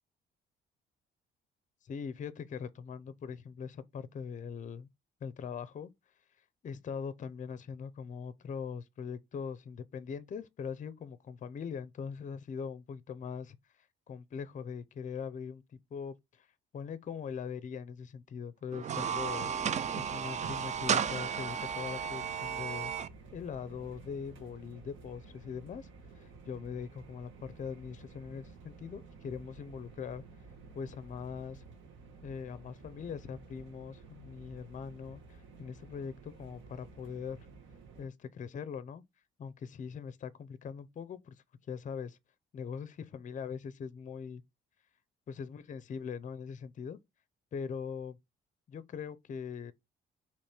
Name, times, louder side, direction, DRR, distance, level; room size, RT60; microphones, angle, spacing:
voice 1, 1.8-4.9 5.2-5.9 6.6-16.5 16.7-19.5 20.0-22.9 23.3-25.9 26.1-30.2 30.7-31.6 32.2-37.4 38.0-39.0 39.4-41.3 41.7-42.2 42.5-44.4 45.3-47.0 47.5-48.2 48.7-49.7, left 6 dB, 40° left, 0.5 m, -41 dB
sound 1, 18.7-23.1, right 7 dB, 35° right, 0.4 m, -33 dB
sound 2, 19.0-38.1, right 4 dB, 75° right, 1.4 m, -53 dB
3.2 x 3.0 x 4.2 m
cardioid pair, 90°, 20 cm